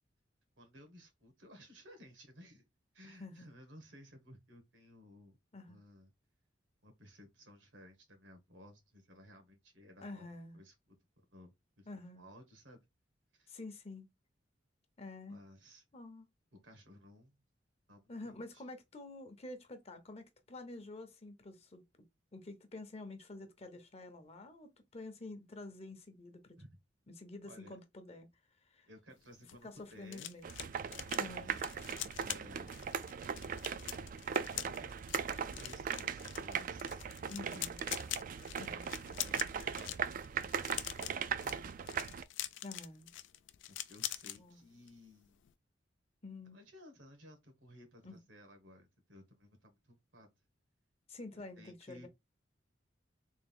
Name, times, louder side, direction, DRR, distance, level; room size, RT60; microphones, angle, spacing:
voice 1, 0.6-2.6 2.9-5.4 5.7-6.1 6.8-10.7 11.2-11.9 12.1-12.8 13.3-13.5 15.3-15.8 16.6-17.4 17.9-18.6 26.6-26.8 27.4-27.8 28.9-30.4 31.3-31.6 32.0-32.9 34.7-37.1 37.5-37.7 39.1-40.1 40.9-41.7 43.7-45.4 46.5-50.3 51.6-52.1, equal, 85° right, 1.3 m, -57 dB
voice 2, 3.0-3.5 5.5-5.8 10.0-10.6 11.9-12.2 13.5-14.1 15.0-15.4 15.9-16.3 18.1-21.8 22.3-26.6 27.2-28.3 28.6-28.9 29.6-30.5 31.1-31.6 37.3-37.9 38.6-38.9 42.6-43.1 44.3-44.6 46.2-46.6 48.0-48.2 51.1-52.1, left 2 dB, 35° left, 0.7 m, -48 dB
sound 1, 29.2-44.4 44.7-45.0 45.2-45.5, left 13 dB, 80° left, 0.4 m, -44 dB
sound 2, 30.4-42.2, right 7 dB, 45° right, 0.3 m, -39 dB
3.6 x 2.5 x 3.5 m
head